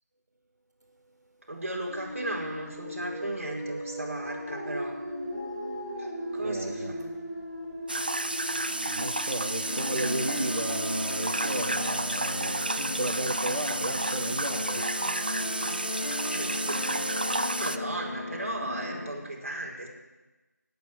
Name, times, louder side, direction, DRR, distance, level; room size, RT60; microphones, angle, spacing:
voice 1, 1.5-5.0 6.0-7.2 16.2-16.8 17.2-19.9, right 1 dB, 50° right, -1 dB, 4.9 m, -36 dB
sound 1, 1.9-14.3, equal, 15° left, 7.9 m, -38 dB
voice 2, 6.4-6.9 8.9-14.8, right 1 dB, 70° right, -2 dB, 2.4 m, -34 dB
sound 2, 7.9-17.8, right 2 dB, 30° right, 0.6 m, -31 dB
sound 3, 9.7-19.1, left 1 dB, 65° left, 3.8 m, -36 dB
16.5 x 9.4 x 9.3 m, 1.1 s
figure-of-eight pair, 175°, 9 cm